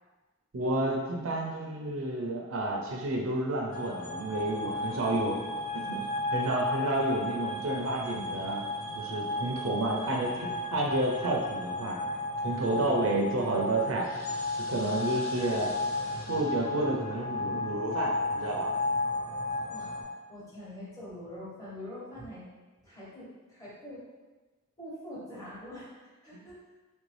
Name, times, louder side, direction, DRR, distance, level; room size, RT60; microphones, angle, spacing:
voice 1, 0.5-5.4 5.7-8.6 8.9-12.0 12.4-14.0 14.7-15.7 16.3-18.7 26.3-26.4, right 2 dB, 65° right, 0 dB, 0.5 m, -30 dB
sound 1, 3.7-20.0, left 2 dB, 70° left, 1.3 m, -34 dB
voice 2, 4.9-5.4 10.0-10.5 12.6-12.9 19.7-19.9 20.3-22.4 22.8-24.0 24.8-25.9 26.2-26.6, left 1 dB, 15° left, -8 dB, 1.0 m, -44 dB
3.2 x 2.6 x 3.2 m, 1.2 s
head